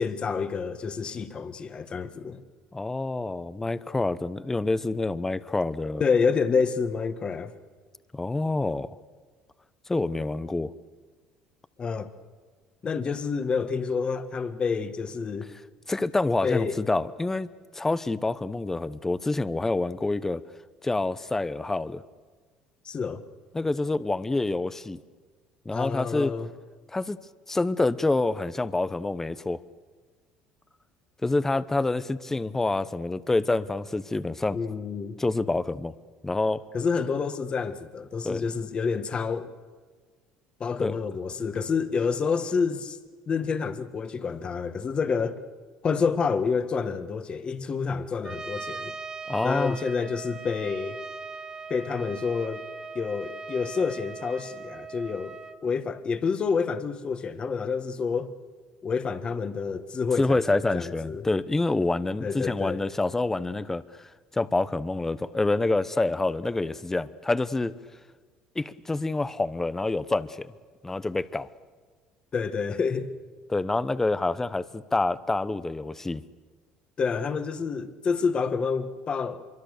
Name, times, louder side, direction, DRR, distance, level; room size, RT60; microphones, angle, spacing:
voice 1, 0.0-2.4 6.0-7.5 11.8-12.1 12.8-15.5 16.4-16.8 22.8-23.2 25.7-26.5 34.5-35.2 36.7-39.5 40.6-43.0 43.3-45.4 45.8-48.9 49.4-51.0 51.7-52.6 52.9-55.4 55.6-58.3 58.8-61.3 62.2-62.8 72.3-73.1 77.0-79.5, left 5 dB, 35° left, 1.7 m, -28 dB
voice 2, 2.7-6.0 8.1-9.0 9.9-10.7 15.9-20.4 20.8-22.0 23.5-25.0 25.6-26.3 26.9-27.2 27.5-29.6 31.2-34.6 35.2-35.9 36.2-36.6 38.2-38.5 40.8-40.9 49.3-49.8 60.2-64.0 64.3-67.7 68.5-70.5 70.8-71.5 73.5-76.2, left 2 dB, 15° left, 0.9 m, -27 dB
Trumpet, 48.2-55.6, right 4 dB, 25° right, 1.4 m, -39 dB
25.0 x 23.5 x 6.8 m
supercardioid pair, 95°, 3 cm